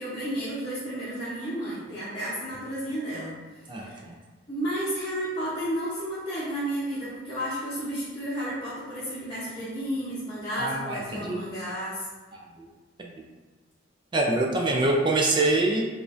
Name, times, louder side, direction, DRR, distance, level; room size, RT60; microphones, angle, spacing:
voice 1, 0.0-3.4 3.8-4.0 4.5-12.0, equal, 25° left, -12 dB, 0.9 m, -32 dB
voice 2, 3.7-4.1 10.6-11.5 12.3-12.4 13.0-13.1 14.1-15.9, right 2 dB, 25° right, 0 dB, 0.4 m, -25 dB
5.1 x 2.5 x 2.5 m, 1.4 s
head